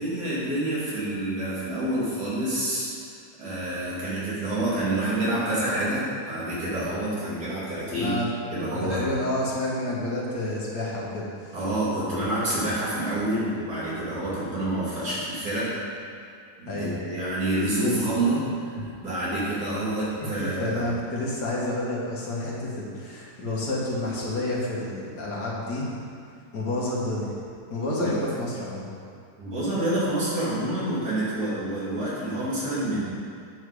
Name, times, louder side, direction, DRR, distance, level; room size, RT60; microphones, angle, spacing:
voice 1, 0.0-2.9 3.4-8.1 8.5-9.0 11.5-15.8 16.6-18.8 19.0-20.9 28.0-28.1 29.4-33.0, right 1 dB, 70° right, -9 dB, 3.2 m, -27 dB
voice 2, 7.9-8.3 8.9-11.5 16.7-17.0 20.4-26.0 26.5-27.3 27.7-28.9, left 1 dB, 90° left, -5 dB, 2.3 m, -29 dB
8.8 x 6.7 x 4.9 m, 2.4 s
omnidirectional pair, 1.7 m